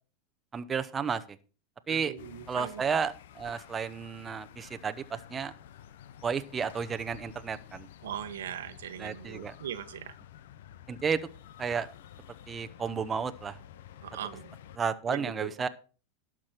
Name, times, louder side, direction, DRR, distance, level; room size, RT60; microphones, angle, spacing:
voice 1, 0.5-1.4 1.9-2.1 2.5-5.5 6.2-7.9 9.0-9.5 10.9-11.2 11.6-11.9 12.5-13.6 14.8-15.7, right 6 dB, 20° right, 10 dB, 0.8 m, -32 dB
voice 2, 1.9-2.8 8.0-10.1 14.0-14.5 15.1-15.5, right 9 dB, 90° right, 10 dB, 1.1 m, -39 dB
sound 1, 2.2-14.8, left 10 dB, 80° left, 0.7 m, -51 dB
12.0 x 6.1 x 5.9 m, 0.37 s
supercardioid pair, 115°, 0 cm